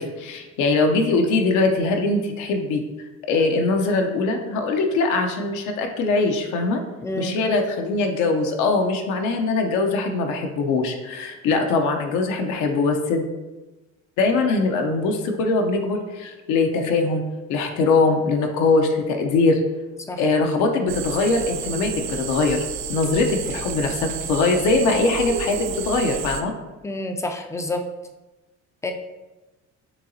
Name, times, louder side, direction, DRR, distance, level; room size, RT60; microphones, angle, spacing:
voice 1, 0.0-2.8 3.3-6.8 7.2-13.2 14.2-17.2 17.5-19.6 20.2-22.6 22.9-26.5, left 3 dB, 80° left, 3 dB, 0.7 m, -22 dB
voice 2, 7.0-7.4 20.1-20.2 26.8-27.8 28.8-28.9, left 1 dB, 10° left, 5 dB, 0.3 m, -28 dB
sound 1, 20.9-26.4, right 8 dB, 65° right, 0.5 m, -31 dB
6.9 x 2.8 x 2.7 m, 1.1 s
cardioid pair, 130°, 30 cm